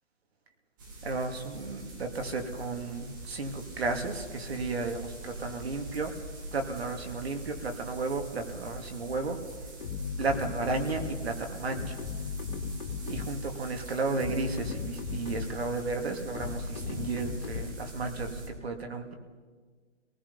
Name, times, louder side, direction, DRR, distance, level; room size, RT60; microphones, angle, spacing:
sound 1, 0.8-18.5, right 2 dB, 15° right, 1.5 m, -43 dB
voice 1, 1.0-6.1 6.5-9.4 10.2-12.0 13.0-19.1, right 3 dB, 60° right, 4 dB, 2.7 m, -33 dB
sound 2, 9.8-11.3 11.7-13.5 14.0-15.7 16.3-17.9, left 6 dB, 40° left, 3.5 m, -37 dB
28.5 x 19.0 x 5.6 m, 1.5 s
hypercardioid pair, 180°, 36 cm